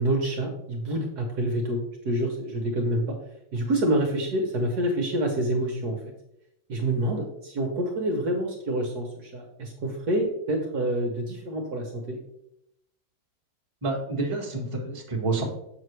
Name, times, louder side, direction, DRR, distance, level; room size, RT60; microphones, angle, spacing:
voice 1, 0.0-3.1 3.5-6.0 6.7-12.2, right 1 dB, 60° right, 1 dB, 1.4 m, -27 dB
voice 2, 13.8-15.4, right 3 dB, 20° right, -2 dB, 1.3 m, -28 dB
7.4 x 5.9 x 3.2 m, 0.80 s
omnidirectional pair, 2.1 m